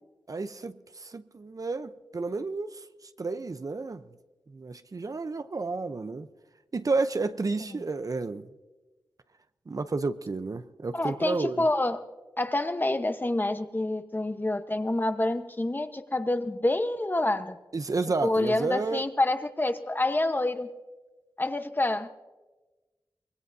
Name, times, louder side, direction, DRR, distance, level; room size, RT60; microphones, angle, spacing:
voice 1, 0.3-2.8 3.2-4.0 4.5-6.3 6.7-8.5 9.7-11.7 17.7-19.0, right 3 dB, 50° right, 0.7 m, -31 dB
voice 2, 10.9-12.0 12.4-17.6 18.2-20.7 21.4-22.1, left 2 dB, 25° left, 1.0 m, -27 dB
24.5 x 20.0 x 2.7 m
cardioid pair, 55°, 8 cm